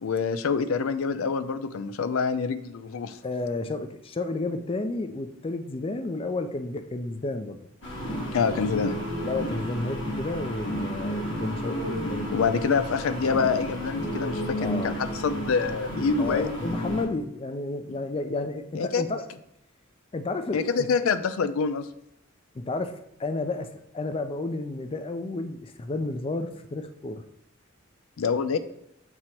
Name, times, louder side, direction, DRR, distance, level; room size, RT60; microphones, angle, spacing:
voice 1, 0.0-3.2 8.3-9.0 12.3-16.6 18.8-19.0 20.5-21.9 28.2-28.6, left 5 dB, 85° left, 12 dB, 0.4 m, -26 dB
voice 2, 3.2-7.6 8.0-8.2 9.2-12.6 14.6-15.0 16.2-19.2 20.1-20.9 22.5-27.2, left 2 dB, 25° left, 8 dB, 0.4 m, -32 dB
sound 1, 7.8-17.0, equal, 60° left, 1.8 m, -32 dB
7.9 x 2.9 x 4.4 m, 0.78 s
head